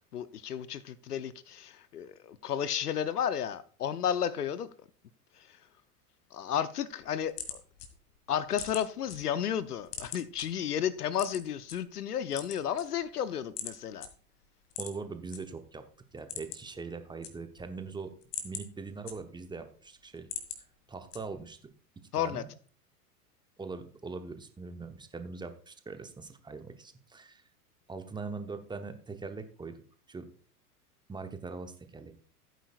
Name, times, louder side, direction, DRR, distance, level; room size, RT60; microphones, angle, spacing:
voice 1, 0.1-4.7 5.4-5.5 6.3-7.6 8.3-14.1 22.1-22.4, left 9 dB, 75° left, 0.8 m, -32 dB
sound 1, 6.9-9.2 9.5-10.4 11.1-11.8 12.2-13.2 13.6-13.7 14.0-14.1 14.7-15.4 15.7-15.8 16.1-16.8 17.0-17.7 18.1-19.6 20.0-20.6 21.1-21.5, left 8 dB, 55° left, 2.1 m, -41 dB
voice 2, 14.8-15.8 16.1-18.1 18.4-20.3 20.6-21.6 22.2-22.5 23.6-27.4 27.9-29.8 30.1-30.3 31.1-32.1, right 4 dB, 10° right, 0.9 m, -41 dB
15.0 x 9.2 x 2.4 m
figure-of-eight pair, 85°, 47 cm